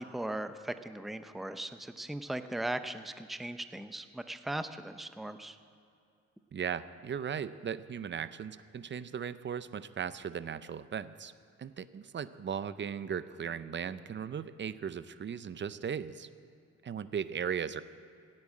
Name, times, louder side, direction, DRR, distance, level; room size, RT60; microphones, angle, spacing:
voice 1, 0.0-5.6, right 1 dB, ahead, 10 dB, 0.7 m, -38 dB
voice 2, 6.5-11.3 11.6-16.3 16.8-17.8, right 7 dB, 40° right, 14 dB, 0.6 m, -37 dB
16.0 x 8.9 x 8.5 m, 2.5 s
cardioid pair, 90°, 30 cm